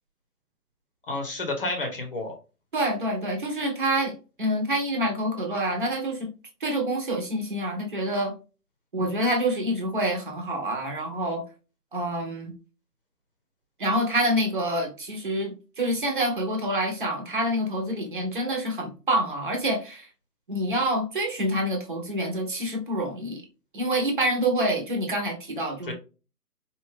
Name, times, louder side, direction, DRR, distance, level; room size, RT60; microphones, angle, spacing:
voice 1, 1.1-2.3 25.9-26.0, left 2 dB, 35° left, 2 dB, 1.1 m, -30 dB
voice 2, 2.7-4.1 4.4-6.3 6.6-8.3 8.9-11.4 11.9-12.5 13.8-20.1 20.5-23.4 23.7-25.9, right 1 dB, 30° right, 2 dB, 1.1 m, -27 dB
4.8 x 2.6 x 3.4 m, 0.32 s
figure-of-eight pair, 150°, 47 cm